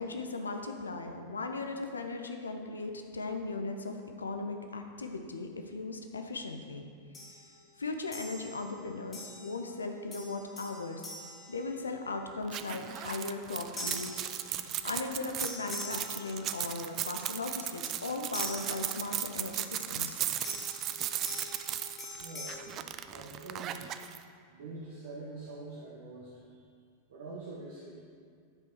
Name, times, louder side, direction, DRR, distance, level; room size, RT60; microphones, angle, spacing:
voice 1, 0.0-6.9 7.8-11.0 11.5-14.2 14.8-20.2, left 3 dB, 75° left, 5 dB, 0.6 m, -38 dB
sound 1, 7.1-7.5 8.1-8.7 9.1-9.7 10.1-12.3 13.8-15.0 15.4-16.9 18.3-19.4 20.4-22.6, left 2 dB, 20° left, 2.1 m, -44 dB
sound 2, 12.5-24.2, right 11 dB, 35° right, 0.3 m, -36 dB
voice 2, 22.2-22.8 23.1-23.9 24.5-26.4 27.1-28.0, right 3 dB, 60° right, -4 dB, 1.1 m, -45 dB
9.5 x 5.2 x 4.5 m, 2.1 s
figure-of-eight pair, 90°, 0 cm